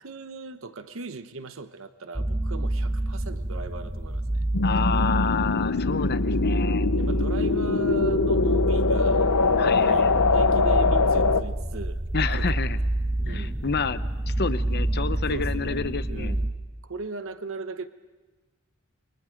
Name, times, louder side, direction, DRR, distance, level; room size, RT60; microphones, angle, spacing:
voice 1, 0.0-4.4 5.9-6.1 6.9-9.3 9.6-12.0 12.3-12.6 13.2-13.6 15.3-16.5 16.8-17.9, right 3 dB, 65° right, 10 dB, 1.0 m, -38 dB
sound 1, 2.1-16.5, right 1 dB, 15° right, 1.2 m, -28 dB
sound 2, 2.7-16.5, equal, 30° right, 2.5 m, -49 dB
sound 3, 4.5-11.4, left 4 dB, 85° left, 0.8 m, -23 dB
voice 2, 4.6-6.9 9.6-10.2 12.1-12.8 13.3-16.4, left 5 dB, 50° left, 12 dB, 0.9 m, -29 dB
28.5 x 24.0 x 5.2 m, 1.2 s
head